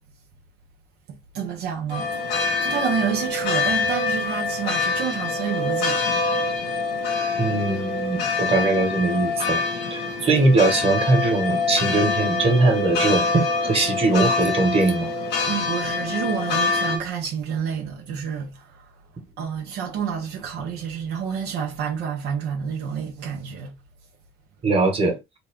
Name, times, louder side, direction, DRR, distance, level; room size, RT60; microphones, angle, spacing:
voice 1, 1.3-2.1 2.6-6.0 15.5-18.5 19.4-23.7, right 7 dB, 80° right, 1.0 m, -28 dB
sound 1, 1.9-17.0, left 4 dB, 85° left, 1.7 m, -25 dB
voice 2, 7.4-9.6 9.9-15.1 24.6-25.2, right 3 dB, 35° right, 1.5 m, -21 dB
4.0 x 2.4 x 3.6 m
cardioid pair, 110°, 17 cm